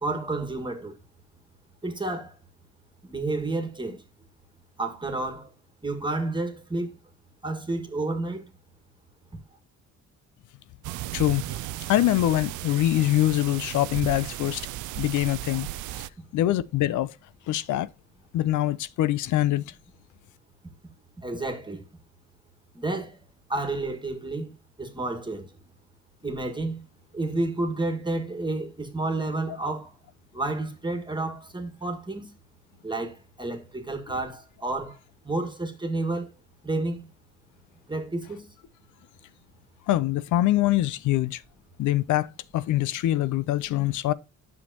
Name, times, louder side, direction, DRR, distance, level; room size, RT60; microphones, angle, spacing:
voice 1, 0.0-1.0 1.8-2.4 3.0-4.0 4.8-5.5 5.8-6.9 7.4-8.4 21.2-21.8 22.7-23.2 23.5-24.5 24.8-25.5 26.2-26.8 27.1-29.9 30.3-32.3 32.8-35.0 35.2-36.3 36.6-37.1 37.9-38.5, right 2 dB, 15° right, 1.8 m, -30 dB
sound 1, 10.8-16.1, right 15 dB, 80° right, 0.4 m, -35 dB
voice 2, 11.1-11.6 11.9-14.7 15.0-15.7 16.3-17.1 17.5-17.9 18.3-19.6 39.9-41.4 41.8-44.1, left 14 dB, 80° left, 0.6 m, -24 dB
9.6 x 6.5 x 2.8 m
cardioid pair, 90°, 30 cm